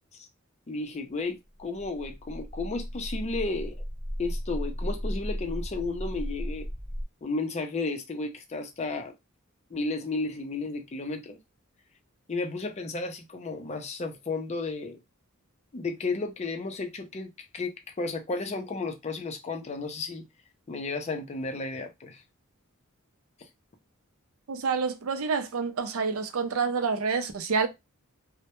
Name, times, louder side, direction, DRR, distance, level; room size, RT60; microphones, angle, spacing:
voice 1, 0.7-3.8 4.2-6.7 7.2-9.1 9.7-11.4 12.3-15.0 15.7-20.3 20.7-22.2, left 3 dB, 30° left, 0.4 m, -33 dB
sound 1, 1.6-7.0, equal, 25° right, 0.8 m, -35 dB
voice 2, 24.5-27.7, right 5 dB, 75° right, 0.5 m, -28 dB
2.1 x 2.1 x 2.9 m
head